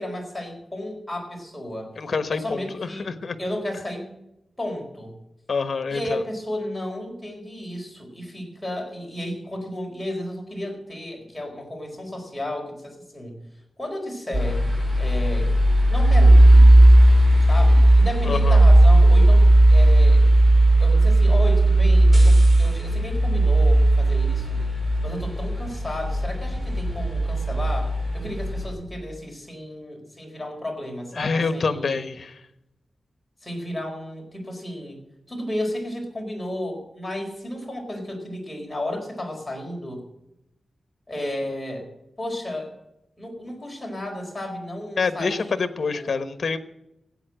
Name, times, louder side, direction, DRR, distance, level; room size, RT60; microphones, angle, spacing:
voice 1, 0.0-2.0 2.3-4.1 4.6-5.1 5.9-13.4 13.8-14.7 15.0-15.5 15.9-16.7 17.4-20.3 20.8-24.6 25.0-32.1 33.4-35.0 35.3-40.1 41.1-41.9 42.2-42.7 43.2-46.2, left 1 dB, 10° left, 0 dB, 4.6 m, -33 dB
voice 2, 2.0-3.4 5.5-6.2 18.2-18.6 31.2-32.3 45.0-46.6, left 4 dB, 55° left, 11 dB, 1.2 m, -26 dB
sound 1, 14.3-28.7, right 1 dB, 25° right, 5.6 m, -16 dB
16.0 x 8.8 x 7.8 m, 0.88 s
wide cardioid pair, 115°, 0 cm